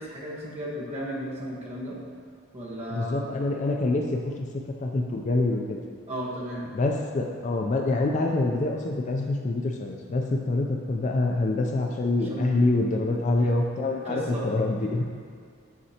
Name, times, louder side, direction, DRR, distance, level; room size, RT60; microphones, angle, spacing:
voice 1, 0.0-2.0 2.5-3.3 6.1-6.7 12.1-12.7 13.0-13.2 13.8-14.6 14.8-15.0, equal, 30° right, -6 dB, 1.1 m, -35 dB
voice 2, 2.9-4.5 4.8-5.8 6.7-15.0, left 2 dB, 35° left, 2 dB, 0.3 m, -26 dB
8.4 x 4.3 x 2.8 m, 2.2 s
head